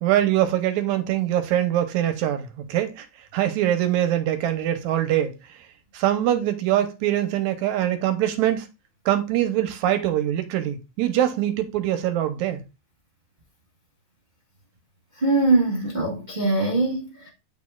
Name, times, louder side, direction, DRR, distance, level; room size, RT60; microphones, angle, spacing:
voice 1, 0.0-3.1 3.3-5.3 5.9-8.7 9.1-12.6, right 12 dB, 75° right, 2.1 m, -23 dB
voice 2, 15.2-17.3, right 2 dB, 30° right, 0.8 m, -22 dB
8.4 x 4.8 x 2.3 m
omnidirectional pair, 3.5 m